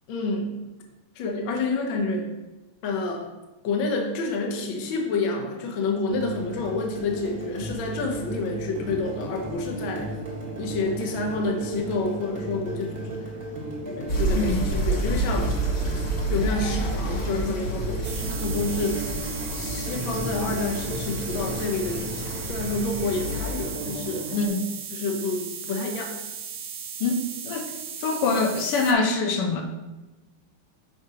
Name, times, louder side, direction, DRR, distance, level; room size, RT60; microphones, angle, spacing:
voice 1, 0.1-0.5 1.2-2.3 2.8-3.3 3.6-10.1 10.6-13.3 13.9-15.6 16.3-19.1 19.5-24.4 24.9-26.2, left 3 dB, 70° left, 3 dB, 1.4 m, -29 dB
sound 1, 6.1-24.5, right 2 dB, 25° right, 1.1 m, -36 dB
sound 2, 14.1-23.6, right 2 dB, 40° left, 1.2 m, -29 dB
voice 2, 14.4-14.7 24.3-24.8 27.0-27.7 28.0-29.6, left 3 dB, 85° left, 3 dB, 1.6 m, -24 dB
sound 3, 18.0-28.9, right 7 dB, 85° right, 1.5 m, -37 dB
6.9 x 4.9 x 2.8 m, 1.1 s
omnidirectional pair, 2.4 m